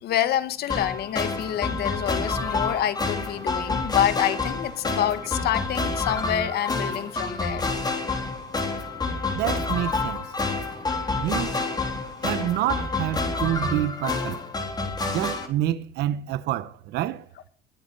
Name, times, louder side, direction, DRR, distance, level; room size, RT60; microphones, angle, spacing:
voice 1, 0.0-7.7, left 11 dB, 70° left, 1.7 m, -27 dB
sound 1, 0.7-15.5, left 3 dB, 25° left, 3.9 m, -28 dB
voice 2, 9.3-10.3 11.2-11.7 12.2-14.4 15.1-17.3, right 13 dB, 80° right, 0.9 m, -28 dB
22.5 x 8.5 x 5.4 m
cardioid pair, 110°, 17 cm